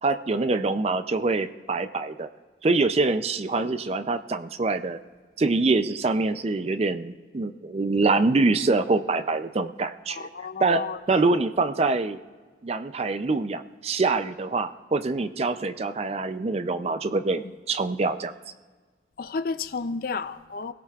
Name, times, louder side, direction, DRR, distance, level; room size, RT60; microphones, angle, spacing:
voice 1, 0.0-2.3 2.6-5.0 5.4-10.3 10.6-12.2 12.6-18.3, right 3 dB, 35° right, 0.4 m, -25 dB
voice 2, 10.2-11.2 19.2-20.7, left 4 dB, 50° left, 0.5 m, -32 dB
23.5 x 17.0 x 2.4 m
head